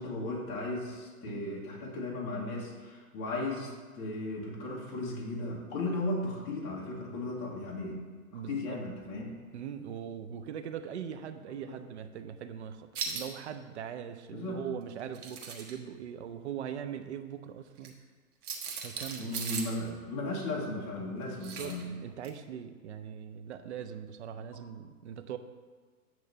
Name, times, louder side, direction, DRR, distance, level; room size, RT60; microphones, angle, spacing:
voice 1, 0.0-8.0 8.3-9.3 11.7-11.8 14.3-14.6 19.2-21.8, left 2 dB, 25° left, -2 dB, 1.1 m, -36 dB
voice 2, 8.3-8.8 9.5-17.9 18.7-19.3 21.0-25.4, right 8 dB, 50° right, 9 dB, 0.5 m, -41 dB
sound 1, 12.9-13.3 15.0-15.7 17.8-17.9 18.4-19.8 21.4-21.8 22.2-22.3, right 5 dB, 80° right, 1.5 m, -38 dB
8.8 x 3.2 x 6.6 m, 1.4 s
hypercardioid pair, 150°, 46 cm